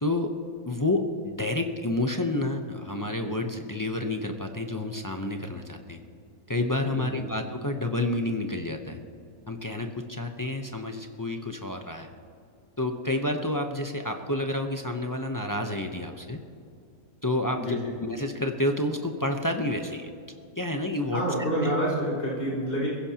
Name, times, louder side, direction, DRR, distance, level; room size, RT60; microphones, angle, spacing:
voice 1, 0.0-0.3 0.6-6.0 6.5-9.0 9.5-12.1 12.8-16.4 17.2-20.1 20.6-21.2 21.6-21.7, left 1 dB, 25° left, 4 dB, 0.4 m, -29 dB
voice 2, 17.5-17.9 21.1-22.9, equal, 45° left, -6 dB, 4.7 m, -28 dB
22.0 x 15.5 x 2.9 m, 2.5 s
omnidirectional pair, 1.6 m